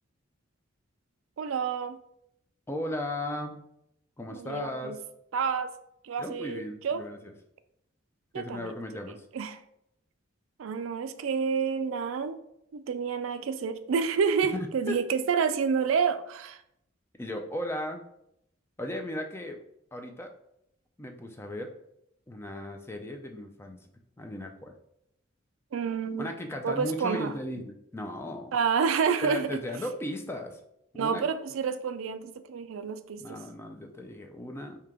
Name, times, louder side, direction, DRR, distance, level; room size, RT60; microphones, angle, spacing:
voice 1, 1.4-2.0 4.3-5.0 5.3-5.7 6.0-7.0 8.3-8.7 9.3-9.6 10.6-12.4 12.7-16.6 25.7-26.3 26.6-27.3 28.5-29.6 31.0-33.4, right 6 dB, 80° right, 11 dB, 0.4 m, -29 dB
voice 2, 2.7-3.6 4.2-5.0 6.2-7.3 8.3-9.2 14.5-15.0 17.2-18.0 18.8-19.6 19.9-20.3 21.0-21.7 22.3-23.8 24.2-24.7 26.2-28.6 29.2-30.6 30.9-31.2 33.2-34.8, left 1 dB, 10° left, 4 dB, 0.4 m, -36 dB
5.0 x 2.8 x 3.5 m, 0.77 s
head